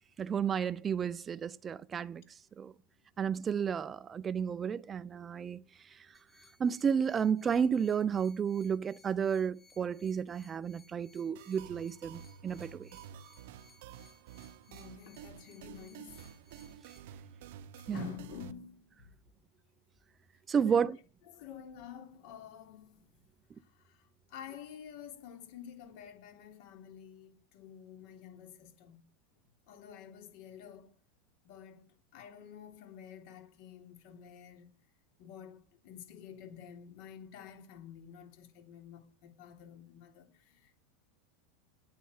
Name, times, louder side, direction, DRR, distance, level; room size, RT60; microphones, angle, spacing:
voice 1, 0.2-2.2 2.6-2.7 3.2-5.6 5.9-6.0 6.6-12.9 17.9-18.1 20.5-21.0, right 7 dB, 25° right, 0.5 m, -32 dB
sound 1, 6.1-17.0, left 4 dB, 15° left, 2.9 m, -64 dB
sound 2, 11.4-18.5, right 9 dB, 70° right, 0.9 m, -50 dB
voice 2, 14.7-16.3 17.8-19.1 20.6-20.9 21.3-23.0 23.5-29.0 29.7-30.9 31.4-34.7 35.2-40.8, left 8 dB, 65° left, 3.2 m, -50 dB
9.3 x 9.0 x 8.0 m
supercardioid pair, 120°, 0 cm